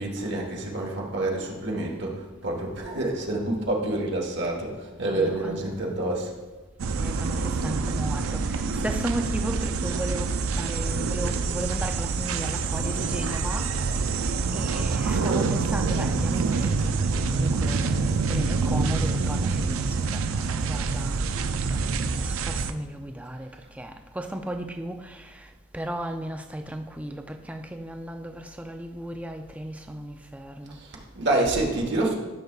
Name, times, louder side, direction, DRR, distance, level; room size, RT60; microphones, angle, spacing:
voice 1, 0.0-6.3 30.7-32.1, right 2 dB, 55° right, 1.3 m, -28 dB
voice 2, 5.1-5.7 7.0-30.8, right 1 dB, 5° right, 0.4 m, -35 dB
sound 1, 6.8-22.7, right 4 dB, 85° right, 0.5 m, -26 dB
13.0 x 6.7 x 2.4 m
head